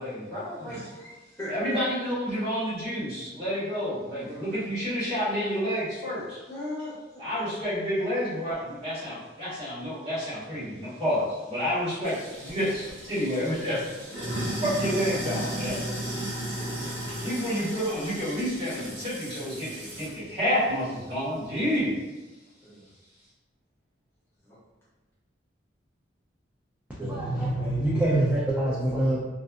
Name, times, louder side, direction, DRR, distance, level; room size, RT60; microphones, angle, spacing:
voice 1, 0.0-0.8 1.5-6.4 7.2-13.9 14.6-15.8 17.2-22.0, equal, 30° right, -11 dB, 1.4 m, -29 dB
voice 2, 0.6-1.8 4.2-4.9 6.5-7.2 16.5-16.9 22.6-22.9 24.4-24.6, left 1 dB, 10° left, -10 dB, 0.7 m, -40 dB
Sink (filling or washing), 12.0-20.2, right 1 dB, 80° right, 0.9 m, -35 dB
voice 3, 27.0-29.2, right 1 dB, 10° right, -8 dB, 0.3 m, -25 dB
2.6 x 2.4 x 2.3 m, 1.1 s
head